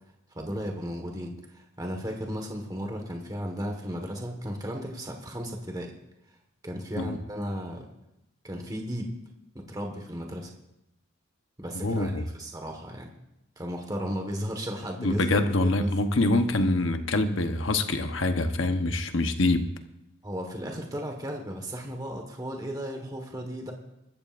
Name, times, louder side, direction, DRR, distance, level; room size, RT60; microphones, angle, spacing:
voice 1, 0.3-5.9 6.6-7.9 8.4-9.2 9.5-10.5 11.6-13.1 13.6-15.9 20.2-23.7, equal, 20° right, 3 dB, 1.5 m, -35 dB
voice 2, 11.8-12.2 15.0-19.6, left 2 dB, 65° left, 7 dB, 1.1 m, -25 dB
23.0 x 13.5 x 2.6 m, 0.85 s
head